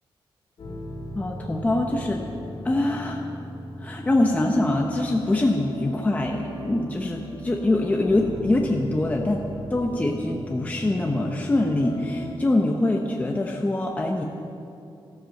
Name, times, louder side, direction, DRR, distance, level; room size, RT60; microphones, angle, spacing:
sound 1, 0.6-12.4, equal, 55° left, 2.5 m, -38 dB
voice 1, 1.1-2.2 2.6-3.3 3.8-9.4 9.7-14.2, left 2 dB, 15° left, 1 dB, 0.9 m, -24 dB
13.5 x 12.5 x 7.7 m, 2.7 s
wide cardioid pair, 175°, 10 cm